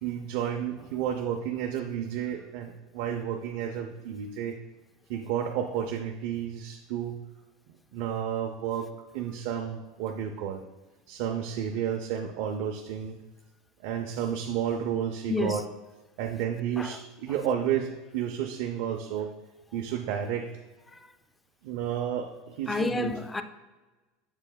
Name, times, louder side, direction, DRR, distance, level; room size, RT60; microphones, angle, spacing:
voice 1, 0.0-4.5 5.1-7.2 7.9-8.9 9.1-10.6 11.1-13.2 13.8-15.6 16.2-19.3 19.7-20.5 21.6-23.1, right 9 dB, 55° right, 0.5 m, -31 dB
voice 2, 15.3-15.6 16.8-16.9 20.9-21.0 22.7-23.4, left 3 dB, 10° left, 0.3 m, -29 dB
7.7 x 7.1 x 2.2 m
supercardioid pair, 165°, 0 cm